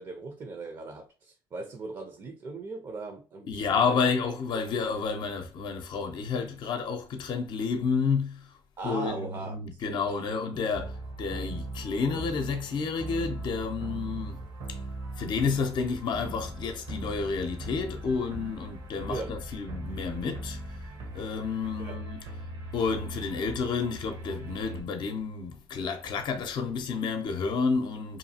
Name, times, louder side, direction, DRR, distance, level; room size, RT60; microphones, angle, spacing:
voice 1, 0.0-4.0 8.8-10.5 19.1-19.4 21.8-22.0, right 3 dB, 45° right, 0.6 m, -39 dB
voice 2, 3.5-8.4 8.8-10.9 11.2-14.4 15.2-20.6 21.1-22.2 22.7-28.2, left 5 dB, 60° left, 0.6 m, -30 dB
sound 1, 10.7-24.8, right 1 dB, 65° right, 0.9 m, -39 dB
2.7 x 2.3 x 2.7 m
supercardioid pair, 70°, 9 cm